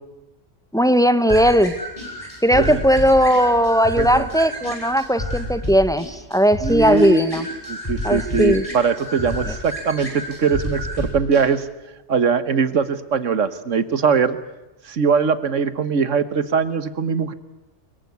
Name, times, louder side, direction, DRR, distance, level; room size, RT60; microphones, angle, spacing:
voice 1, 0.7-1.7 2.4-7.5 8.0-8.6 9.5-9.6, equal, 5° left, 12 dB, 1.0 m, -17 dB
sound 1, 1.3-11.4, equal, 25° left, 7.8 m, -30 dB
voice 2, 6.6-11.7 12.1-14.4 14.8-17.3, right 5 dB, 75° right, 13 dB, 1.7 m, -21 dB
23.5 x 22.0 x 9.5 m, 1.0 s
omnidirectional pair, 1.3 m